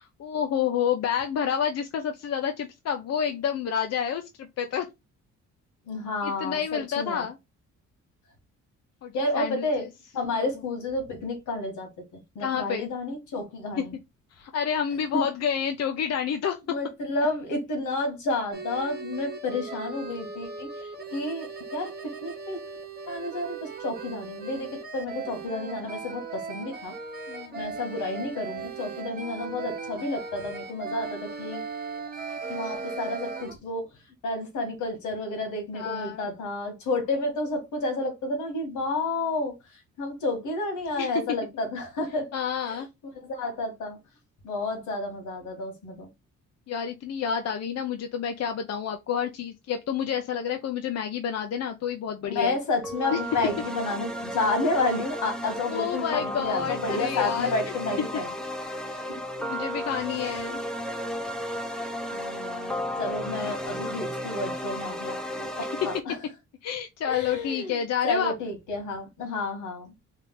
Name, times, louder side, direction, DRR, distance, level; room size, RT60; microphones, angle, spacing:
voice 1, 0.0-4.9 6.2-7.4 9.0-9.9 10.4-10.5 12.4-12.9 13.8-13.9 14.4-16.6 27.3-27.6 35.7-36.3 41.0-41.2 42.3-42.9 46.7-52.6 53.1-53.2 55.7-57.5 58.9-59.0 59.4-60.6 65.8-65.9 66.6-68.3, left 8 dB, 55° left, 0.6 m, -29 dB
voice 2, 5.9-7.3 9.1-9.8 10.1-11.9 12.4-13.9 15.1-15.2 16.7-20.7 21.1-22.6 23.1-26.9 27.6-31.6 32.5-33.9 34.2-39.5 40.0-42.3 42.7-42.8 43.2-44.0 44.4-46.1 52.2-58.3 58.9-59.0 62.1-66.2 67.1-67.8 68.0-69.9, left 2 dB, 80° left, 2.0 m, -30 dB
sound 1, 18.5-33.5, right 4 dB, 30° right, 1.1 m, -38 dB
sound 2, 52.8-66.0, equal, ahead, 0.8 m, -34 dB
3.6 x 2.7 x 3.8 m
cardioid pair, 90°, 30 cm